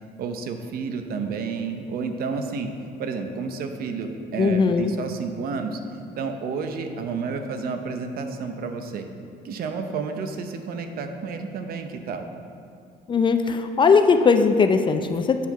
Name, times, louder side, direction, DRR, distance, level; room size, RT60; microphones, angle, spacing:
voice 1, 0.2-2.7 3.0-5.8 6.2-9.1 9.4-12.2, right 5 dB, 60° right, 6 dB, 0.7 m, -30 dB
voice 2, 4.4-4.9 13.1-15.5, left 5 dB, 30° left, 8 dB, 0.4 m, -19 dB
8.3 x 4.4 x 5.6 m, 2.5 s
cardioid pair, 110°, 17 cm